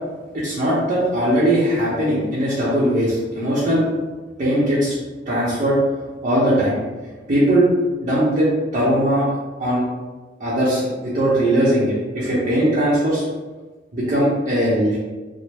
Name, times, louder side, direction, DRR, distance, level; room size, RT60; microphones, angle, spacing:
voice 1, 0.3-3.8 4.4-4.9 5.3-5.8 6.2-6.8 7.3-7.7 8.0-8.5 8.7-9.3 9.6-9.8 10.4-13.2 13.9-15.0, right 1 dB, 40° right, -9 dB, 0.7 m, -19 dB
3.0 x 2.0 x 3.3 m, 1.3 s
head